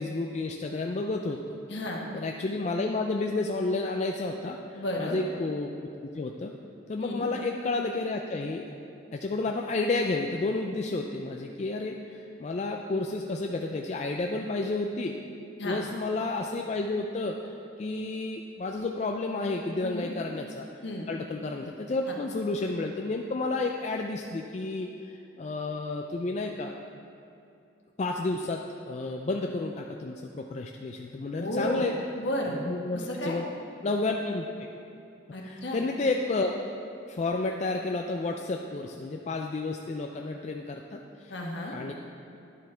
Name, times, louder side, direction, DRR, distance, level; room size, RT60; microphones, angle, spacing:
voice 1, 0.0-1.6 2.1-5.7 6.1-6.5 6.9-8.7 9.1-15.1 15.6-20.7 21.1-26.7 28.0-32.0 32.5-33.4 33.8-34.7 35.4-36.5 37.1-41.3 41.7-41.9, left 3 dB, 35° left, 2 dB, 0.3 m, -31 dB
voice 2, 1.7-2.0 4.7-5.2 7.0-7.3 15.6-15.8 19.8-20.1 20.8-21.1 22.1-22.2 31.4-31.9 32.2-32.6 32.9-33.4 35.3-35.8 41.3-41.8, left 1 dB, 65° left, -1 dB, 1.3 m, -33 dB
10.5 x 8.0 x 3.4 m, 2.6 s
head